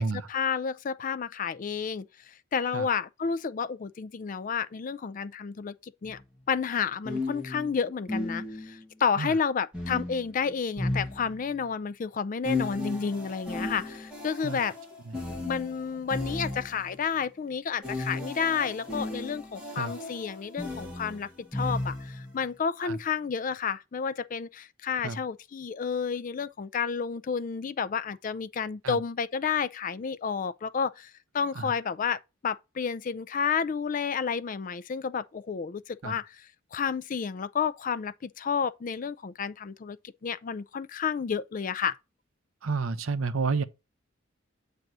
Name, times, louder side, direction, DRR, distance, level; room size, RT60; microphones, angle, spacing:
voice 1, 0.0-6.2 6.5-14.7 15.4-40.0 40.2-42.0, left 6 dB, 40° left, 0.3 m, -31 dB
sound 1, 6.0-6.2 7.0-8.9 9.7-11.7 12.4-17.0 17.8-22.3, left 2 dB, 5° right, 1.6 m, -35 dB
voice 2, 42.6-43.6, right 4 dB, 80° right, 0.6 m, -30 dB
7.8 x 2.7 x 6.0 m
head